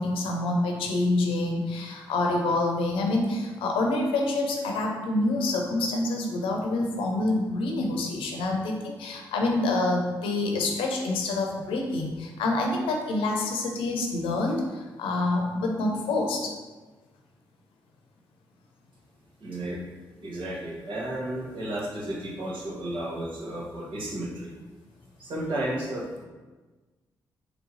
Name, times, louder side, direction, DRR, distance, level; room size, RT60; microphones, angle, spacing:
voice 1, 0.0-16.5, left 2 dB, 85° left, 1 dB, 0.6 m, -27 dB
voice 2, 19.4-19.8 20.2-24.5 25.2-26.2, right 1 dB, 70° right, -4 dB, 1.1 m, -33 dB
3.4 x 3.0 x 3.8 m, 1.3 s
supercardioid pair, 50°, 9 cm